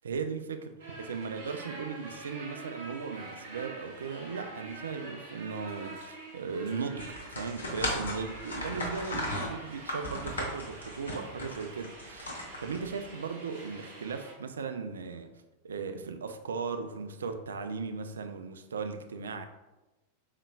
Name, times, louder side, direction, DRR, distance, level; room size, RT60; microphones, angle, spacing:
voice 1, 0.0-12.3 12.6-15.3 15.6-19.5, right 5 dB, 70° right, 7 dB, 0.3 m, -37 dB
sound 1, 0.8-14.3, right 3 dB, 55° right, 1.0 m, -46 dB
sound 2, 7.0-13.1, left 1 dB, 70° left, 1.0 m, -36 dB
5.3 x 3.6 x 2.3 m, 1.1 s
figure-of-eight pair, 90°, 0 cm